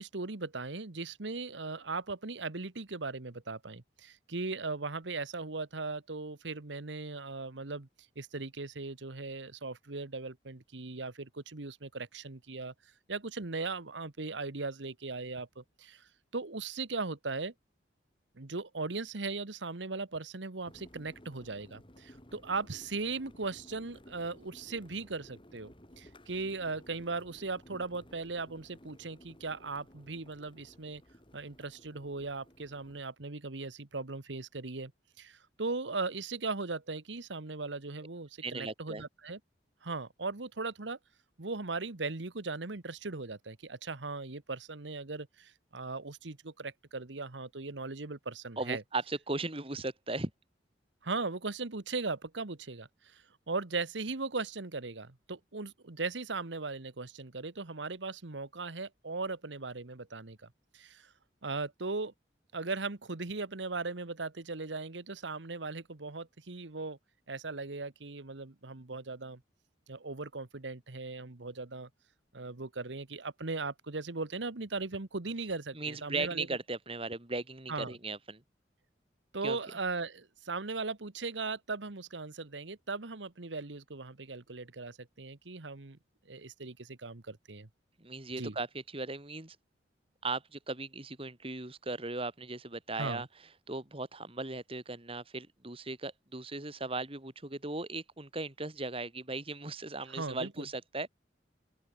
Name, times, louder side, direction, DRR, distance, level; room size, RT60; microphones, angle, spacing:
voice 1, 0.0-7.9 8.1-12.7 13.1-17.5 18.4-25.7 26.0-31.0 31.3-34.9 35.2-39.4 39.8-41.0 41.4-48.8 51.0-60.4 60.7-61.1 61.4-62.1 62.5-67.0 67.3-69.4 69.9-71.9 72.3-76.5 77.7-77.9 79.3-86.0 86.3-87.7 88.4-88.5 92.9-93.2 100.1-100.7, right 3 dB, 90° right, 1.4 m, -38 dB
sound 1, 20.6-33.0, equal, 30° left, 7.5 m, -56 dB
voice 2, 38.4-39.0 48.6-50.3 75.7-78.4 79.4-79.6 88.0-89.6 90.2-93.3 93.7-101.1, right 3 dB, 30° right, 2.5 m, -37 dB
open air
head